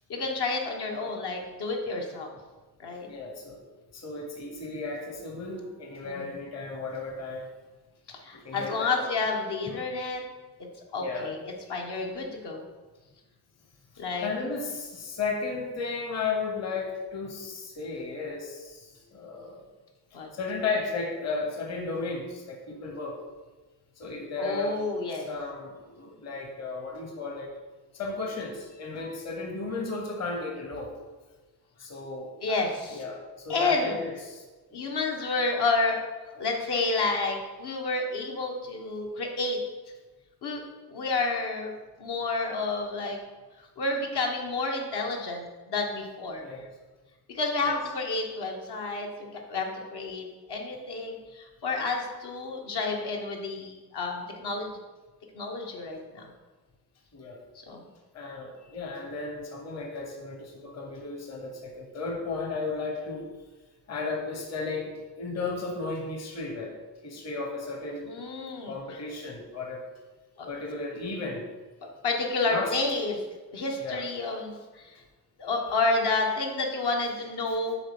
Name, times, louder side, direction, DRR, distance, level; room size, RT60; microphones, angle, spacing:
voice 1, 0.1-2.3 2.8-3.1 6.0-6.4 8.1-10.2 10.9-11.4 11.7-12.6 14.0-14.3 20.1-20.3 24.4-25.3 32.4-33.0 33.5-34.0 34.7-39.6 40.4-40.6 40.9-41.7 42.0-43.2 43.8-46.6 47.3-54.8 55.3-56.3 57.5-57.9 68.1-69.0 70.4-70.5 72.0-73.2 73.5-74.9 75.4-77.8, left 3 dB, 70° left, 1 dB, 1.3 m, -30 dB
voice 2, 3.1-3.6 3.9-7.5 8.3-9.0 9.7-9.9 11.0-11.3 14.2-19.6 20.1-23.2 24.0-27.5 27.9-30.9 31.8-32.7 32.9-34.4 34.7-34.8 46.4-46.6 47.6-47.7 57.1-57.4 58.1-63.3 63.9-66.8 67.0-68.1 68.7-69.9 70.5-71.5 72.5-72.8 73.8-74.1, left 3 dB, 40° left, 2 dB, 1.0 m, -34 dB
7.7 x 3.1 x 6.0 m, 1.2 s
cardioid pair, 110°, 41 cm